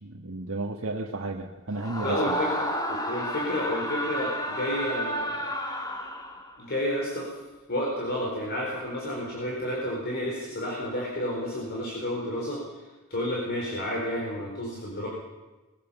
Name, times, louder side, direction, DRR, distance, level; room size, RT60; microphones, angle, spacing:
voice 1, 0.0-2.4, right 2 dB, 70° right, 1 dB, 1.6 m, -33 dB
Screaming, 1.7-6.6, equal, 20° left, 2.1 m, -31 dB
voice 2, 2.0-5.5 6.6-7.3 7.7-12.6 13.1-15.1, equal, 50° left, -3 dB, 4.6 m, -31 dB
22.5 x 16.5 x 7.1 m, 1.2 s
head